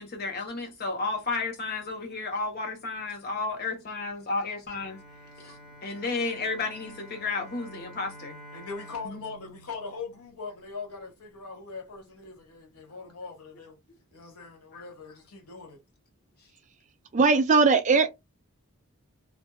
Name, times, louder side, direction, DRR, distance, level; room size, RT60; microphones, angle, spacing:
voice 1, 0.0-5.0 5.4-8.3 9.0-9.2 14.7-14.8, left 3 dB, 45° left, 0.9 m, -32 dB
Bowed string instrument, 4.7-10.9, equal, 5° right, 1.2 m, -49 dB
voice 2, 8.5-13.8 14.1-15.8, left 4 dB, 90° left, 1.0 m, -41 dB
voice 3, 17.1-18.1, right 4 dB, 35° right, 0.3 m, -20 dB
2.5 x 2.4 x 2.3 m
head